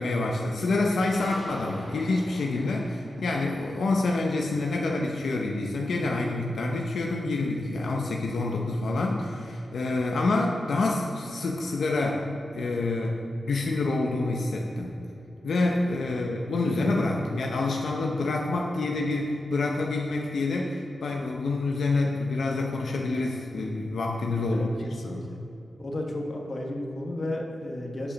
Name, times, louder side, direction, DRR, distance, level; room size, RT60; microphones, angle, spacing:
voice 1, 0.0-12.2 12.5-13.2 13.5-14.9 15.4-24.7 25.0-25.2, left 2 dB, 85° left, 0 dB, 0.7 m, -27 dB
sound 1, 1.1-4.9, right 1 dB, 25° right, 1.4 m, -45 dB
voice 2, 24.5-25.4 25.8-28.1, left 1 dB, 50° left, 0 dB, 1.3 m, -33 dB
8.5 x 5.1 x 6.2 m, 2.8 s
wide cardioid pair, 90°, 0 cm